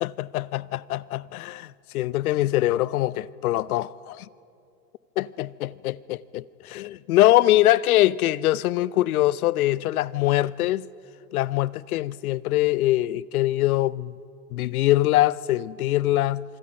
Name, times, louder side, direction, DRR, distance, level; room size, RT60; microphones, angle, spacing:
voice 1, 0.0-4.3 5.2-10.9 11.3-14.2 14.5-16.4, left 15 dB, 65° left, 0.7 m, -23 dB
26.0 x 24.5 x 5.4 m
hypercardioid pair, 100°, 46 cm